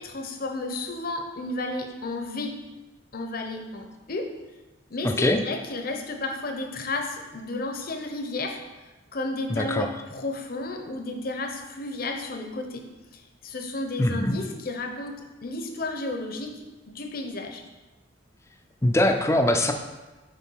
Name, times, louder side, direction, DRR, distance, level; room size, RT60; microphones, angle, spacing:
voice 1, 0.0-2.6 3.1-4.4 4.9-8.6 9.1-16.6 16.9-17.6, left 2 dB, 50° left, 4 dB, 0.8 m, -32 dB
voice 2, 5.0-5.4 9.5-9.9 14.0-14.4 18.8-19.7, left 1 dB, 15° left, 5 dB, 0.5 m, -22 dB
6.9 x 4.4 x 4.7 m, 1.1 s
head